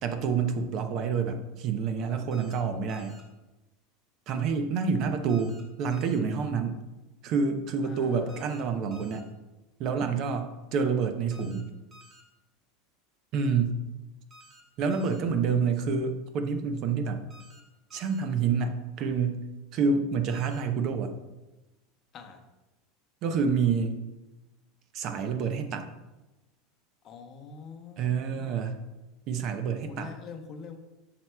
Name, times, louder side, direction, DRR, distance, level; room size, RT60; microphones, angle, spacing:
voice 1, 0.0-3.2 4.3-6.8 7.2-9.3 9.8-11.7 13.3-13.8 14.8-17.2 17.9-19.4 19.7-21.1 23.2-24.0 24.9-25.9 28.0-28.8 29.3-30.1, right 5 dB, 45° right, 7 dB, 0.6 m, -28 dB
sound 1, 2.3-2.6 2.9-3.2 5.3-5.6 5.9-6.2 8.3-8.6 8.9-9.2 11.3-11.6 11.9-12.2 14.3-14.6 14.9-15.2 17.3-17.6 17.9-18.2 20.3-20.6, equal, 25° right, 1.2 m, -53 dB
voice 2, 7.8-8.7 22.1-22.4 27.0-28.6 29.9-30.8, left 5 dB, 35° left, 5 dB, 0.7 m, -45 dB
7.6 x 5.9 x 2.2 m, 1.0 s
supercardioid pair, 140°, 0 cm